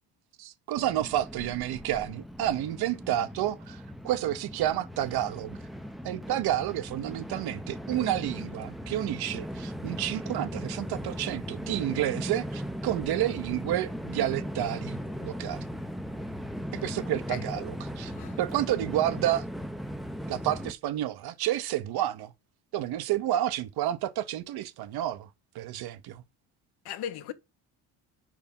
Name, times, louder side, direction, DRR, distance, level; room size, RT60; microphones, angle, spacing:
voice 1, 0.4-5.6 6.0-15.6 16.7-18.1 18.4-19.5 20.3-22.3 22.7-25.3 25.5-26.2, right 13 dB, 65° right, 0.8 m, -30 dB
Train, 0.8-20.7, equal, ahead, 0.5 m, -38 dB
voice 2, 17.3-17.7 18.0-18.4 26.8-27.3, left 9 dB, 65° left, 0.9 m, -38 dB
4.8 x 4.7 x 5.3 m
cardioid pair, 110°, 42 cm